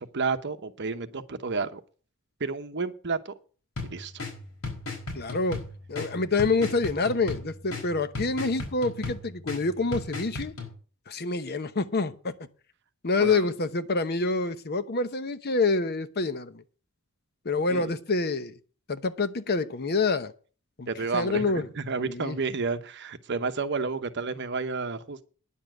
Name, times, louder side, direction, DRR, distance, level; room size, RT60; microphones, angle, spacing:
voice 1, 0.0-1.8 2.4-3.3 3.8-4.1 13.2-13.5 17.7-17.9 20.9-25.2, right 4 dB, 55° right, 10 dB, 1.0 m, -31 dB
sound 1, 3.8-10.7, left 3 dB, 70° left, 4.5 m, -37 dB
voice 2, 5.1-5.6 5.9-10.5 11.1-12.3 13.0-16.6 17.4-18.5 18.9-20.3 20.8-20.9 21.1-21.6 22.0-22.4, left 3 dB, 45° left, 11 dB, 0.9 m, -27 dB
10.0 x 7.1 x 7.7 m, 0.39 s
head